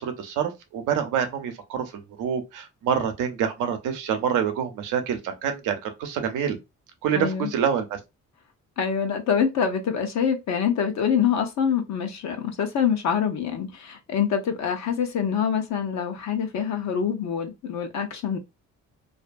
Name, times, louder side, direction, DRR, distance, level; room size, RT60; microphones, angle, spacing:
voice 1, 0.0-6.6 7.0-8.0, right 8 dB, 90° right, 0.7 m, -27 dB
voice 2, 7.1-7.5 8.8-18.4, left 7 dB, 65° left, 0.8 m, -25 dB
2.6 x 2.3 x 2.5 m
cardioid pair, 90°, 30 cm